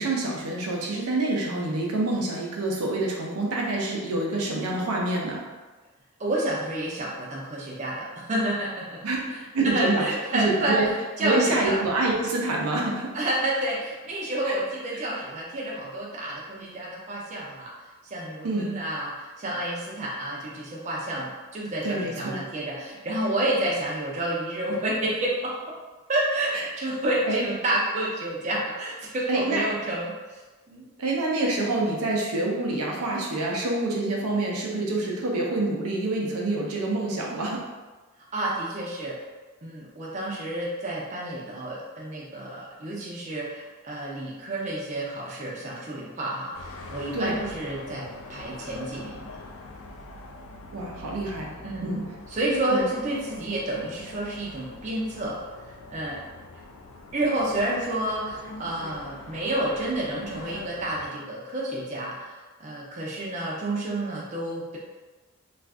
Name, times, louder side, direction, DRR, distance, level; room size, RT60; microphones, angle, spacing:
voice 1, 0.0-5.4 9.0-9.2 9.5-10.0 10.3-10.9 11.2-13.2 14.4-14.6 18.4-18.7 21.8-22.4 26.5-26.6 27.3-27.4 29.3-29.6 31.0-37.7 47.1-47.4 50.7-51.5 51.8-52.0 52.7-52.8, right 2 dB, 90° right, -2 dB, 0.6 m, -26 dB
voice 2, 6.2-9.0 9.3-10.8 11.2-11.8 13.1-17.7 18.0-25.5 26.1-30.4 30.7-30.9 38.3-39.2 39.6-49.3 51.6-51.9 52.3-55.4 55.7-56.2 57.1-64.8, right 1 dB, 30° right, -4 dB, 0.5 m, -30 dB
sound 1, 46.5-61.1, left 2 dB, 65° left, 0.3 m, -43 dB
2.4 x 2.4 x 3.4 m, 1.3 s
head